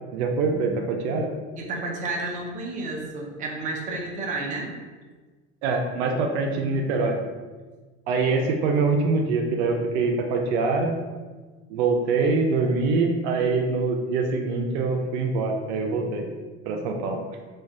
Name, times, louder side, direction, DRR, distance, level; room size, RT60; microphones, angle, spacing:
voice 1, 0.1-1.4 5.6-7.2 8.1-10.9 11.7-16.3 16.7-17.2, right 3 dB, 80° right, 3 dB, 0.5 m, -24 dB
voice 2, 1.6-4.7, right 2 dB, 25° right, -1 dB, 0.5 m, -31 dB
3.1 x 2.3 x 2.6 m, 1.4 s
supercardioid pair, 120°, 33 cm